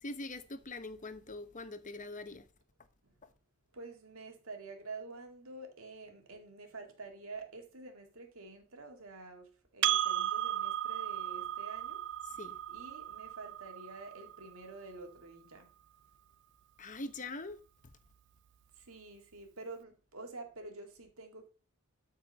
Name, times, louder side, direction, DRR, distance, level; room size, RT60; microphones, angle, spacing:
voice 1, 0.0-2.5 12.3-12.6 16.8-17.6, left 2 dB, 35° left, 1.0 m, -43 dB
voice 2, 3.7-12.0 12.7-15.7 18.8-21.5, right 3 dB, 75° right, 2.1 m, -48 dB
Percussion, 9.8-14.6, right 11 dB, 60° right, 0.3 m, -35 dB
12.5 x 4.7 x 5.4 m
head